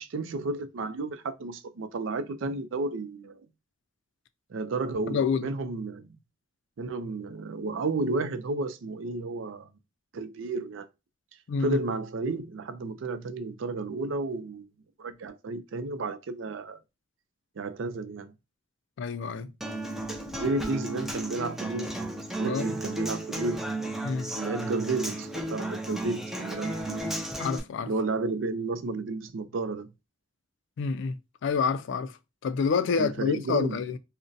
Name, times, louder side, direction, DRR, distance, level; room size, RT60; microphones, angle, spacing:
voice 1, 0.0-3.4 4.5-6.2 6.8-9.7 10.1-10.9 11.6-14.7 15.0-16.8 17.6-18.3 20.3-22.0 22.4-23.7 24.3-27.1 27.9-29.9 33.0-33.8, right 3 dB, 75° right, 0.4 m, -32 dB
voice 2, 5.1-5.5 11.5-11.8 19.0-19.5 22.5-22.6 24.0-24.3 27.4-27.9 30.8-34.0, left 5 dB, 65° left, 0.3 m, -28 dB
Human voice / Acoustic guitar, 19.6-27.6, right 1 dB, ahead, 0.6 m, -34 dB
2.5 x 2.1 x 3.8 m
head